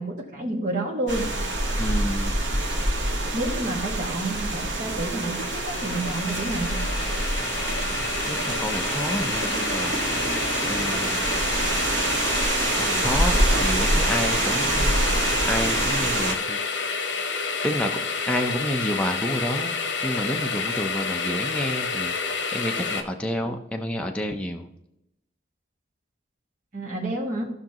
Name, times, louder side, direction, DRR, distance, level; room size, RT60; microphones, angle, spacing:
voice 1, 0.0-1.3 3.3-6.8 26.7-27.4, right 2 dB, 45° right, -1 dB, 2.0 m, -29 dB
sound 1, 1.1-16.3, right 2 dB, 80° right, 1.7 m, -26 dB
voice 2, 1.8-2.5 8.3-10.3 10.6-11.4 12.7-16.6 17.6-22.1 22.5-24.7, equal, 5° left, 2 dB, 0.6 m, -30 dB
sound 2, 4.9-23.0, left 5 dB, 75° left, 1.0 m, -30 dB
15.5 x 5.9 x 3.0 m, 0.83 s
head